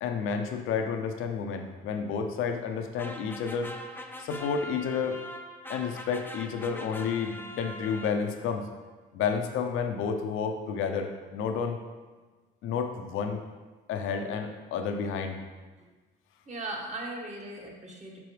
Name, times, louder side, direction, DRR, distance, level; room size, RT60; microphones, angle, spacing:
voice 1, 0.0-3.7 4.2-5.2 5.7-8.7 9.1-11.8 12.6-13.4 13.9-15.4, left 6 dB, 80° left, 5 dB, 0.8 m, -30 dB
sound 1, 3.0-8.5, left 1 dB, 10° left, 0.6 m, -42 dB
voice 2, 16.4-18.2, right 2 dB, 35° right, -2 dB, 1.7 m, -38 dB
6.1 x 6.0 x 3.4 m, 1.3 s
supercardioid pair, 80°, 20 cm